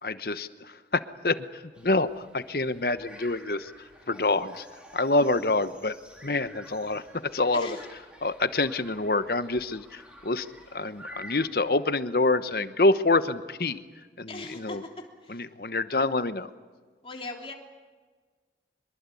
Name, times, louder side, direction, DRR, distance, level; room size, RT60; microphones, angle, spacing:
voice 1, 0.0-3.7 4.1-4.6 4.9-6.0 6.2-7.0 7.3-7.8 8.2-10.5 10.7-13.8 14.2-14.8 15.3-16.5, left 2 dB, 55° left, 12 dB, 1.0 m, -26 dB
sound 1, 1.7-11.5, equal, 5° right, 3.3 m, -50 dB
voice 2, 7.5-7.8 14.3-15.4 17.0-17.5, left 2 dB, 30° left, 1 dB, 3.3 m, -39 dB
24.0 x 22.5 x 8.5 m, 1.4 s
head